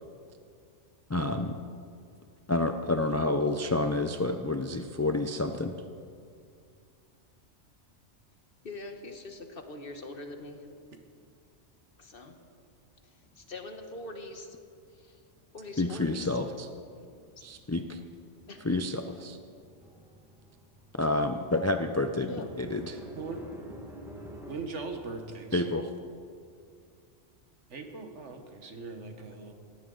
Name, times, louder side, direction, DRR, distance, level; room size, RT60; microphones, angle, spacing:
voice 1, 1.1-1.6 2.5-5.7 15.8-16.7 17.4-18.0 18.6-19.4 21.0-23.0 25.5-25.9, left 2 dB, 25° left, 6 dB, 0.3 m, -29 dB
voice 2, 8.6-10.6 12.0-12.4 13.4-14.6 15.0-15.2 15.5-16.3 18.5-18.7 22.3-22.5, left 2 dB, 50° left, 5 dB, 1.4 m, -42 dB
sound 1, 13.2-14.9 15.2-24.6, equal, ahead, 1.6 m, -51 dB
voice 3, 24.5-25.6 27.7-29.5, right 4 dB, 75° right, 5 dB, 1.7 m, -40 dB
19.0 x 14.5 x 3.9 m, 2.3 s
omnidirectional pair, 1.2 m